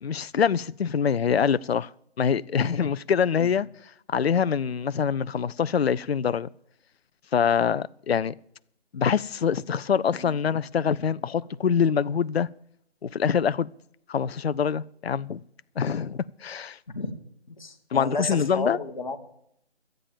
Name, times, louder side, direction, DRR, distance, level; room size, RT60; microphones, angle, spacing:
voice 1, 0.0-1.9 2.2-3.7 4.1-6.5 7.3-8.3 8.9-12.5 13.0-13.7 14.1-15.4 15.8-16.8 17.9-18.8, left 7 dB, 65° left, 0.5 m, -25 dB
voice 2, 10.8-11.1 16.9-17.1 17.5-19.2, left 3 dB, 45° left, 1.7 m, -33 dB
12.5 x 8.9 x 7.2 m
figure-of-eight pair, 160°, 33 cm